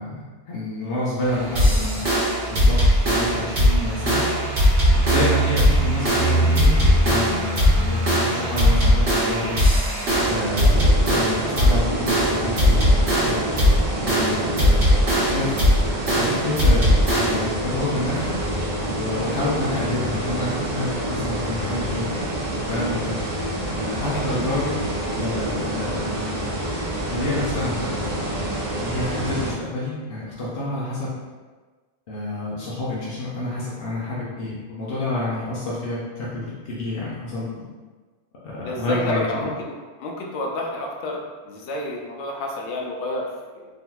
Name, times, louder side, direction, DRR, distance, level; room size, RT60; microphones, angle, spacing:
voice 1, 0.0-2.1 2.5-4.3 4.9-9.7 10.2-12.8 13.2-13.5 14.0-18.4 18.9-22.1 22.7-23.1 23.7-24.7 25.1-26.5 27.1-28.5 28.8-31.1 32.1-37.6 38.4-39.4, left 2 dB, 60° left, -7 dB, 0.9 m, -29 dB
sound 1, 1.2-10.4, right 2 dB, 80° right, 1.1 m, -27 dB
sound 2, 1.6-17.5, equal, 65° right, 1.2 m, -19 dB
sound 3, 10.1-29.5, right 1 dB, 45° right, 0.6 m, -27 dB
voice 2, 24.1-24.5 38.6-43.7, left 2 dB, 85° left, 0 dB, 0.9 m, -30 dB
3.7 x 2.7 x 2.3 m, 1.4 s
omnidirectional pair, 1.1 m